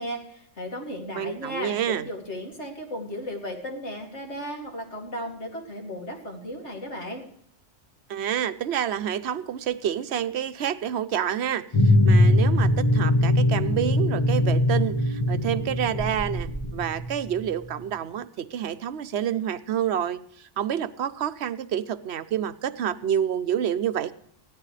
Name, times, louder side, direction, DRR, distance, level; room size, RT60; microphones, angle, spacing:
voice 1, 0.0-7.3, equal, 65° left, 1 dB, 2.9 m, -35 dB
voice 2, 1.2-2.1 8.1-24.1, right 9 dB, 65° right, 12 dB, 1.0 m, -28 dB
sound 1, 11.7-17.6, left 1 dB, 25° left, 1.5 m, -21 dB
20.5 x 15.0 x 3.3 m, 0.68 s
omnidirectional pair, 1.2 m